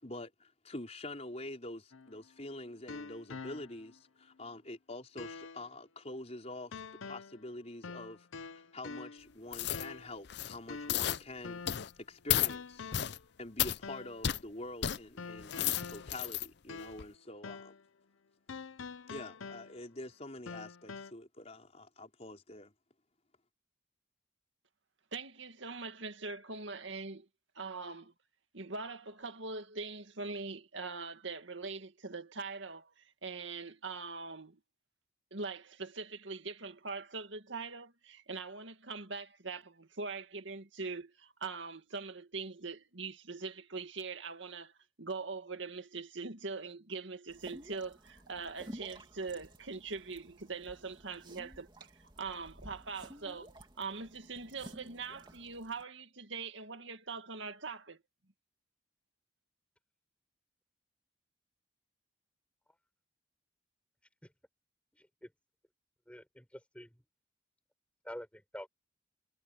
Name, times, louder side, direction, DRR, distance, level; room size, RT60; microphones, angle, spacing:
voice 1, 0.0-6.8 7.0-11.6 11.9-12.9 13.4-17.7 19.1-22.7, left 1 dB, 35° left, 5.1 m, -46 dB
sound 1, 1.9-4.0 4.4-4.5 5.2-5.7 6.7-7.5 7.8-9.3 9.7-10.2 10.7-12.0 12.5-13.2 13.8-14.2 15.2-17.2 17.4-17.8 18.5-20.0 20.5-21.1, left 4 dB, 90° left, 0.7 m, -46 dB
sound 2, 9.5-9.9 10.2-10.6 10.9-11.2 11.7-11.9 12.3-12.5 12.9-13.2 13.6-13.8 14.2-14.4 14.8-15.0 15.4-16.5 16.9-17.0, left 11 dB, 55° left, 0.5 m, -32 dB
voice 2, 25.1-27.3 27.6-28.1 28.5-34.6 35.3-44.7 45.0-58.0, right 4 dB, 70° right, 2.1 m, -42 dB
sound 3, 47.3-55.8, right 1 dB, 25° right, 2.8 m, -53 dB
voice 3, 64.9-65.3 66.1-67.0 68.0-68.7, equal, 5° left, 4.8 m, -48 dB
head